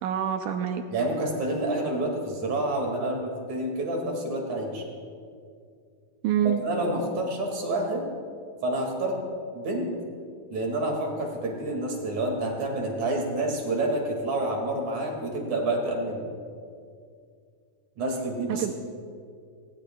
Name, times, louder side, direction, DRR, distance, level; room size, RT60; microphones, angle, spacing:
voice 1, 0.0-0.8 6.2-6.6 18.5-18.7, right 9 dB, 75° right, 6 dB, 1.9 m, -26 dB
voice 2, 0.9-4.8 6.6-8.1 8.6-9.2 9.5-9.9 10.5-16.2 18.0-18.7, right 1 dB, 55° right, 1 dB, 3.4 m, -28 dB
22.5 x 19.0 x 2.3 m, 2.3 s
omnidirectional pair, 4.0 m